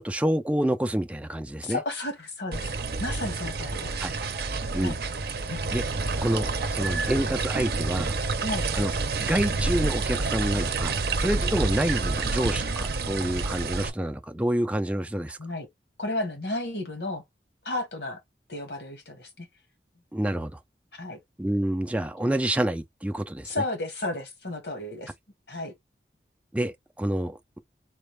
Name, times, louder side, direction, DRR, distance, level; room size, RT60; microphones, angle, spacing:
voice 1, 0.0-1.8 4.0-4.1 4.7-5.0 5.7-5.8 6.2-8.1 8.7-8.9 9.2-15.4 20.1-20.6 21.4-23.5 26.5-27.6, right 1 dB, 5° right, 0.4 m, -28 dB
voice 2, 1.6-2.7 3.0-4.0 4.8-5.0 5.5-5.7 8.4-8.7 15.4-15.7 16.0-17.2 17.6-18.2 18.5-19.5 20.9-21.2 23.4-25.1 25.5-25.7, left 2 dB, 75° left, 1.7 m, -33 dB
sound 1, 2.5-13.9, right 3 dB, 60° right, 0.7 m, -28 dB
4.2 x 2.5 x 3.2 m
head